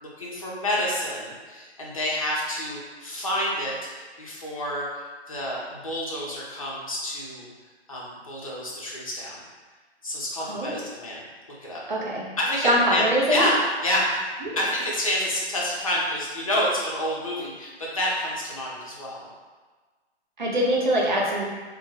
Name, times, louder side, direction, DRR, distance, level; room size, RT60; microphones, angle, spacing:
voice 1, 0.0-7.5 7.9-9.4 10.0-11.8 12.4-19.3, equal, 30° left, -5 dB, 0.6 m, -28 dB
voice 2, 10.4-10.8 11.9-12.3 12.6-13.5 14.4-14.6 20.4-21.5, equal, 45° right, -3 dB, 0.7 m, -23 dB
2.7 x 2.5 x 3.7 m, 1.4 s
hypercardioid pair, 175°, 33 cm